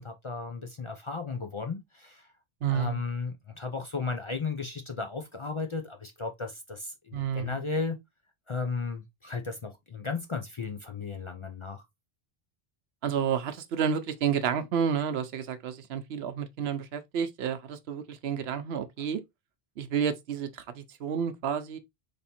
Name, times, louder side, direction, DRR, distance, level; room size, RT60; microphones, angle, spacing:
voice 1, 0.0-2.3 2.7-8.0 8.5-11.8, left 4 dB, 40° left, 0.4 m, -35 dB
voice 2, 2.6-3.0 7.1-7.6 13.0-19.2 19.8-21.8, right 7 dB, 85° right, 0.9 m, -30 dB
3.4 x 2.6 x 4.3 m
omnidirectional pair, 1.0 m